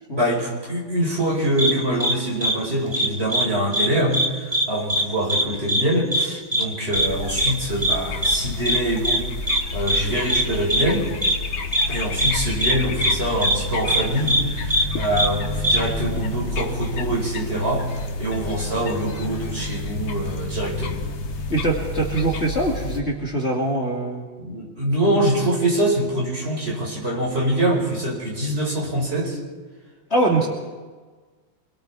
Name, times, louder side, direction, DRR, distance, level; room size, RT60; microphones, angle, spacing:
voice 1, 0.1-11.1 11.9-21.0 24.4-29.4, right 1 dB, 30° right, -2 dB, 4.9 m, -24 dB
sound 1, 1.6-1.7 2.0-2.1 2.4-2.5 2.9-3.5 3.7-4.6 4.9-5.0 5.3-5.4 5.7-5.8 6.1-6.2 6.5-6.6 6.9-7.1 7.4-7.5 7.8-8.0 8.2-8.4 8.7-8.8 9.0-9.2 9.5-9.6 9.9-10.0 10.3-10.4 10.7-10.8 11.2-11.3 11.7-11.9 12.2-12.3 12.6-12.7 13.0-13.1 13.4-13.5 13.9-14.0 14.3-14.4 14.7-14.8 15.2-15.3 15.6-15.8, right 1 dB, 15° right, 1.9 m, -20 dB
sound 2, 6.9-23.0, left 3 dB, 90° left, 2.3 m, -29 dB
voice 2, 21.5-24.3 30.1-30.5, right 2 dB, 35° left, -2 dB, 2.6 m, -23 dB
27.0 x 21.5 x 4.8 m, 1.4 s
omnidirectional pair, 2.1 m